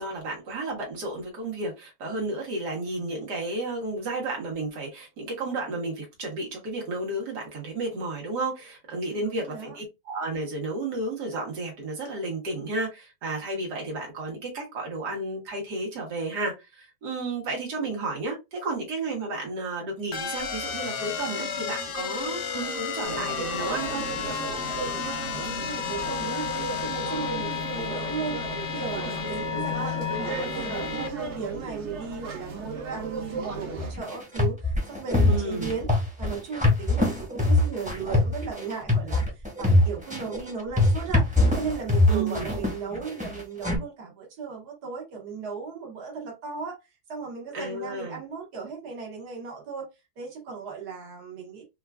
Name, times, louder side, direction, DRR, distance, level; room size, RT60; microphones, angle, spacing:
voice 1, 0.0-24.0 35.2-35.7 42.1-42.5 47.5-48.2, right 2 dB, 90° right, 1.7 m, -32 dB
voice 2, 9.1-9.8 25.0-26.5 26.8-28.4 28.7-35.9 36.2-46.8 47.1-49.9 50.2-51.6, right 5 dB, 75° right, 1.7 m, -36 dB
sound 1, 20.1-31.1, left 7 dB, 60° left, 0.9 m, -32 dB
sound 2, 23.0-33.9, right 4 dB, 50° right, 1.0 m, -35 dB
sound 3, 33.8-43.8, left 2 dB, 5° right, 0.7 m, -23 dB
4.4 x 2.4 x 2.2 m
omnidirectional pair, 1.7 m